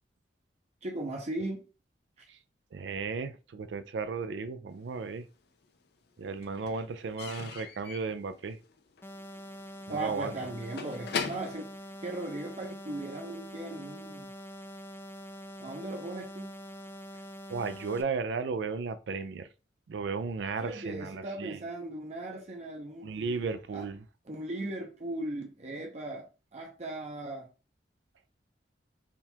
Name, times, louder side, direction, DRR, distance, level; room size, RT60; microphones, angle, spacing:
voice 1, 0.8-1.6 9.9-11.7 12.0-14.3 15.6-16.5 20.6-23.1 23.7-23.8 24.3-26.2 26.5-27.5, right 2 dB, 40° right, 0.7 m, -37 dB
voice 2, 2.7-5.3 6.2-8.6 9.9-10.4 17.5-19.5 19.9-21.6 23.0-24.0, right 4 dB, 75° right, 0.4 m, -35 dB
Slam / Squeak / Wood, 4.9-5.8 6.0-12.8, left 6 dB, 65° left, 0.5 m, -41 dB
sound 1, 9.0-18.0, equal, 15° left, 0.3 m, -45 dB
3.6 x 2.4 x 4.4 m
head